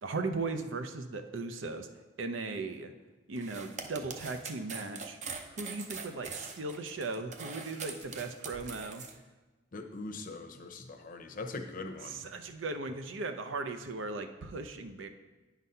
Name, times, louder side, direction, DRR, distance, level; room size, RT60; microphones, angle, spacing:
voice 1, 0.0-1.9 2.2-2.9 3.3-5.2 5.5-9.0 12.0-15.1, right 3 dB, 80° right, 7 dB, 0.6 m, -37 dB
sound 1, 3.4-9.1, right 5 dB, 40° right, 0.6 m, -42 dB
voice 2, 9.7-12.2, left 3 dB, 45° left, 6 dB, 0.7 m, -41 dB
9.3 x 4.0 x 5.5 m, 1.2 s
head